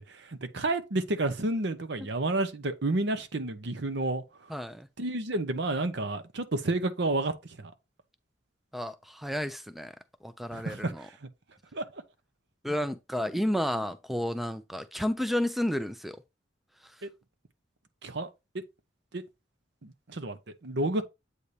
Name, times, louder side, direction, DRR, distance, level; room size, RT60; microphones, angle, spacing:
voice 1, 0.0-4.2 5.0-7.3 7.6-7.7 10.5-11.1 11.7-11.8 17.0-17.1 18.0-18.3 19.1-19.2 19.8-21.0, right 2 dB, 60° right, 0.8 m, -30 dB
voice 2, 4.5-4.9 8.7-9.9 10.2-11.1 12.6-16.2, left 1 dB, ahead, 0.4 m, -31 dB
8.2 x 2.8 x 4.9 m
head